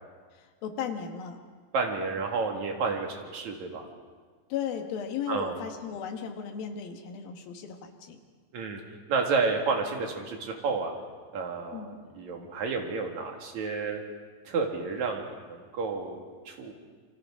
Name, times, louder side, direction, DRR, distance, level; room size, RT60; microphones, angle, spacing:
voice 1, 0.3-1.4 4.5-8.2 11.7-12.0, left 8 dB, 65° left, 4 dB, 3.1 m, -36 dB
voice 2, 1.7-3.9 5.3-5.6 8.5-8.8 9.1-10.9 11.3-14.0 14.4-16.7, right 4 dB, 50° right, 2 dB, 2.9 m, -31 dB
29.0 x 24.5 x 3.7 m, 1.5 s
omnidirectional pair, 4.9 m